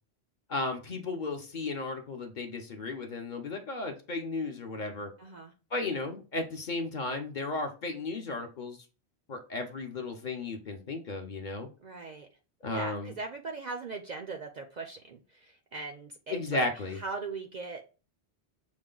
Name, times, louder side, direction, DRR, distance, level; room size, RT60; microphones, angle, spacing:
voice 1, 0.5-5.1 5.7-8.8 9.3-11.7 12.6-13.2 16.3-17.0, left 3 dB, 50° left, 4 dB, 0.8 m, -34 dB
voice 2, 5.2-5.5 11.8-12.3 12.7-16.7 16.9-17.9, right 3 dB, 55° right, 5 dB, 0.5 m, -40 dB
6.1 x 2.2 x 3.8 m, 0.34 s
omnidirectional pair, 1.1 m